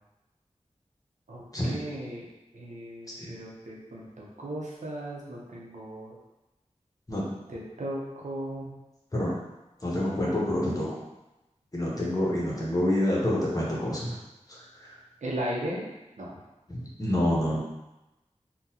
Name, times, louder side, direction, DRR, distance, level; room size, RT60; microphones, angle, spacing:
voice 1, 1.3-2.3 2.5-6.2 7.5-8.7 11.9-12.3 15.2-15.8 16.2-16.3, right 1 dB, 85° right, -4 dB, 0.7 m, -36 dB
voice 2, 9.8-10.9 11.7-14.2 14.8-15.0 16.7-17.6, left 1 dB, 30° left, -5 dB, 1.0 m, -27 dB
3.8 x 2.2 x 2.8 m, 1.0 s
wide cardioid pair, 65°, 12 cm